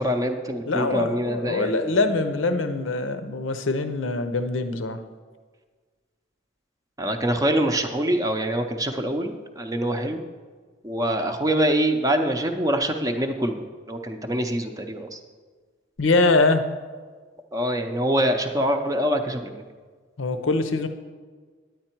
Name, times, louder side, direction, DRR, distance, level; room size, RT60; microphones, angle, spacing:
voice 1, 0.0-2.0 7.0-10.3 10.8-15.2 17.5-19.6, right 1 dB, 20° right, 5 dB, 0.6 m, -25 dB
voice 2, 0.7-5.0 16.0-16.6 20.2-20.9, left 3 dB, 85° left, 9 dB, 0.8 m, -23 dB
9.3 x 9.2 x 4.5 m, 1.5 s
head